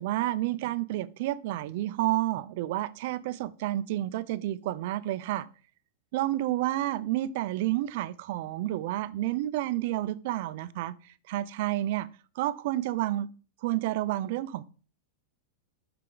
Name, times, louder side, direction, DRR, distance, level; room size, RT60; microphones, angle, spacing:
voice 1, 0.0-5.5 6.1-10.9 11.3-12.1 12.4-13.3 13.6-14.7, right 15 dB, 55° right, 0.5 m, -30 dB
7.6 x 5.7 x 3.9 m
supercardioid pair, 145°, 0 cm